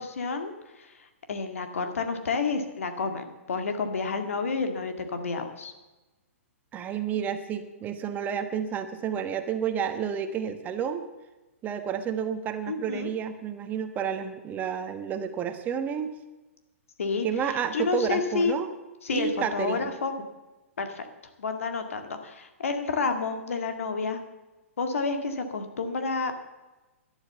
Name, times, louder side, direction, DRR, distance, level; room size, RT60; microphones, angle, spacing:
voice 1, 0.0-5.7 12.7-13.1 17.0-18.6 19.0-20.1 20.8-21.1 21.4-24.2 24.8-26.3, left 4 dB, 70° left, 7 dB, 2.0 m, -30 dB
voice 2, 6.7-11.0 11.6-16.1 17.2-18.7 19.1-19.9, right 8 dB, 20° right, 8 dB, 1.2 m, -30 dB
12.0 x 11.5 x 6.9 m, 1.1 s
figure-of-eight pair, 120°, 8 cm